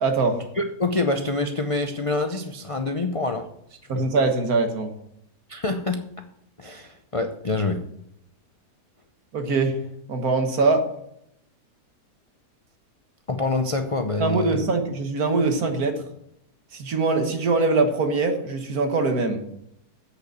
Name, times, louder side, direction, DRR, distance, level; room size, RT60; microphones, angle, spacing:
voice 1, 0.0-0.4 3.9-4.9 9.3-9.8 10.1-10.9 14.2-16.0 16.7-19.4, right 3 dB, 60° right, 5 dB, 1.8 m, -22 dB
voice 2, 0.6-3.5 3.9-4.0 5.5-6.0 6.6-7.8 13.3-14.6, left 2 dB, 50° left, 5 dB, 0.3 m, -26 dB
8.0 x 6.7 x 8.3 m, 0.74 s
omnidirectional pair, 1.8 m